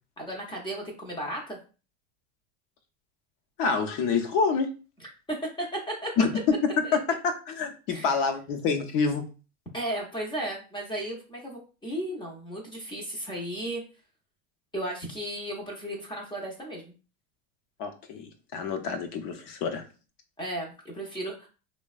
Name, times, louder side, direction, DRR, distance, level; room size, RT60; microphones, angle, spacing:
voice 1, 0.2-1.6 5.3-6.1 6.8-7.0 7.9-8.1 9.7-13.8 14.7-16.9 20.4-21.5, right 1 dB, 10° left, -1 dB, 0.6 m, -34 dB
voice 2, 3.6-4.7 6.2-6.3 6.9-9.3 17.8-19.8, left 5 dB, 50° left, 6 dB, 0.7 m, -27 dB
3.3 x 2.1 x 2.4 m, 0.34 s
supercardioid pair, 140°, 42 cm